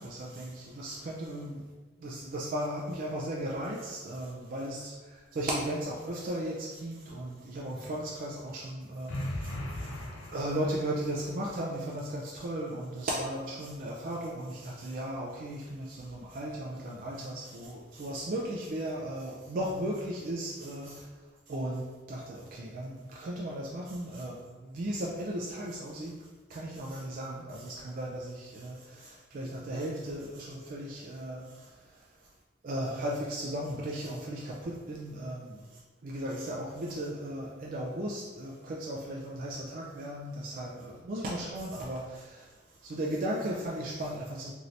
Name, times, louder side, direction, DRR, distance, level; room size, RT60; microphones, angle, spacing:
voice 1, 0.0-1.6 2.0-10.0 10.3-21.1 21.5-26.2 26.5-31.7 32.6-35.6 36.0-42.5 42.8-44.5, right 1 dB, 45° right, -3 dB, 0.3 m, -36 dB
sound 1, 9.1-11.1, left 1 dB, 85° left, 0.5 m, -37 dB
2.7 x 2.5 x 3.1 m, 1.3 s
head